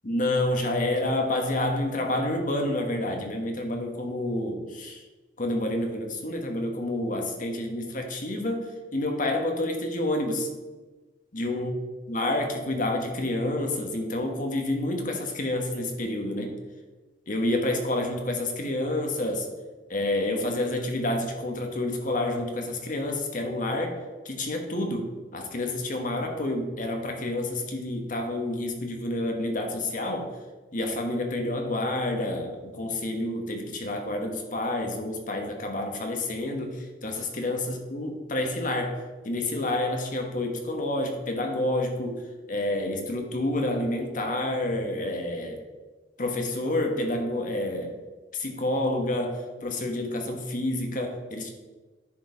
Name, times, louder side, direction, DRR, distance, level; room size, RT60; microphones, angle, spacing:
voice 1, 0.0-5.0 5.4-10.5 11.3-11.7 12.1-16.6 17.3-19.5 19.9-24.0 24.2-30.3 30.7-45.6 46.2-48.0 48.3-51.5, left 1 dB, 50° left, 3 dB, 1.4 m, -29 dB
10.0 x 4.7 x 5.5 m, 1.3 s
head